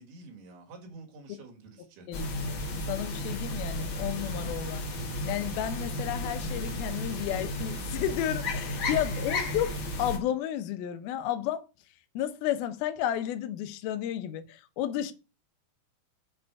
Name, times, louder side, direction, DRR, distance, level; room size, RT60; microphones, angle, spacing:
voice 1, 0.0-2.1, right 3 dB, 80° right, 3.8 m, -49 dB
voice 2, 2.1-2.6 2.9-4.8 5.2-11.7 12.1-15.1, left 11 dB, 80° left, 2.7 m, -32 dB
sound 1, 2.1-10.2, left 1 dB, 55° left, 1.4 m, -33 dB
7.4 x 5.3 x 4.6 m
omnidirectional pair, 4.4 m